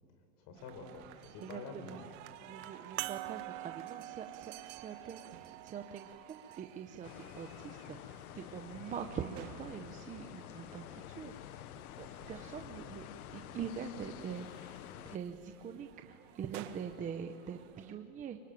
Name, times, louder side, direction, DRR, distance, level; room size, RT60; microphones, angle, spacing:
voice 1, 0.4-2.1 2.4-2.7 12.3-12.5, left 4 dB, 40° left, 7 dB, 4.8 m, -48 dB
sound 1, 0.5-17.9, right 12 dB, 55° right, 1.8 m, -54 dB
voice 2, 1.4-2.0 2.5-11.6 11.9-13.1 13.3-18.4, right 7 dB, 15° right, 5 dB, 0.9 m, -44 dB
sound 2, 3.0-7.8 8.6-8.7 10.8-10.9, right 20 dB, 40° right, 0.6 m, -46 dB
sound 3, 7.0-15.2, left 13 dB, 70° left, 1.0 m, -49 dB
24.0 x 24.0 x 9.2 m, 2.6 s
supercardioid pair, 150°, 45 cm